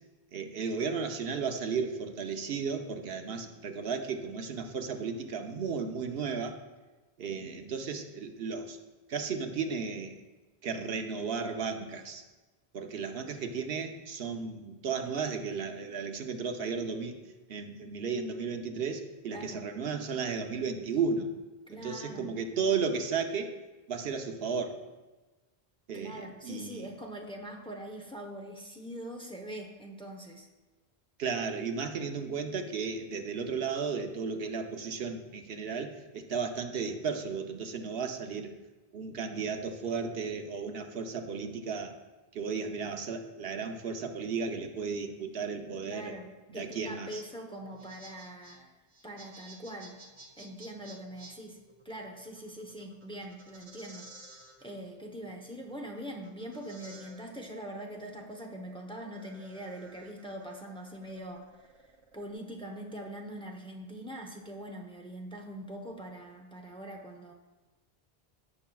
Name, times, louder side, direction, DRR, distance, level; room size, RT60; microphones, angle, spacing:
voice 1, 0.3-6.6 7.2-8.8 9.1-10.1 10.6-12.2 12.7-17.2 17.5-21.3 21.7-23.5 23.9-24.8 25.9-26.8 31.2-38.5 38.9-41.9 42.3-46.2 46.5-47.2, right 5 dB, 70° right, 5 dB, 1.0 m, -34 dB
voice 2, 19.3-19.6 21.7-22.3 25.9-30.5 45.8-46.3 46.5-48.7 49.0-49.9 50.4-51.6 51.8-54.1 54.6-61.5 62.1-67.3, right 1 dB, 5° left, 2 dB, 0.7 m, -43 dB
sound 1, 47.6-62.3, right 2 dB, 35° right, 0.8 m, -55 dB
15.0 x 5.7 x 2.3 m, 1.2 s
omnidirectional pair, 1.0 m